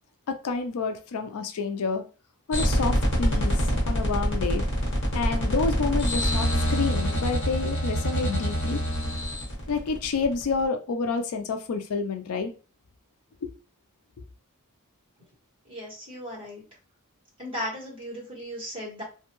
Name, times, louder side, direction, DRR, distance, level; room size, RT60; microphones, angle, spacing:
voice 1, 0.3-2.0 2.5-4.6 5.1-8.8 9.7-12.5 13.4-13.5 14.2-14.3, left 4 dB, 70° left, 7 dB, 0.4 m, -29 dB
sound 1, 2.5-10.6, equal, 55° left, 1.2 m, -26 dB
voice 2, 15.7-16.6 17.4-19.0, equal, 25° right, -4 dB, 1.3 m, -36 dB
2.5 x 2.2 x 2.9 m, 0.35 s
head